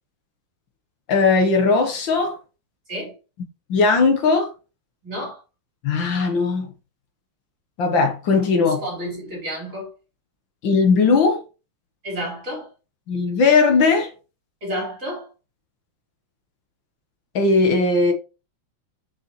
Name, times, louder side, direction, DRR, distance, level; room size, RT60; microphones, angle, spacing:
voice 1, 1.1-2.4 3.7-4.5 5.8-6.7 7.8-8.8 10.6-11.4 13.1-14.1 17.4-18.1, left 4 dB, 65° left, 1.9 m, -18 dB
voice 2, 5.0-5.4 8.6-9.9 12.0-12.7 14.6-15.3, equal, 35° right, 4.7 m, -30 dB
7.6 x 7.1 x 3.1 m
omnidirectional pair, 2.3 m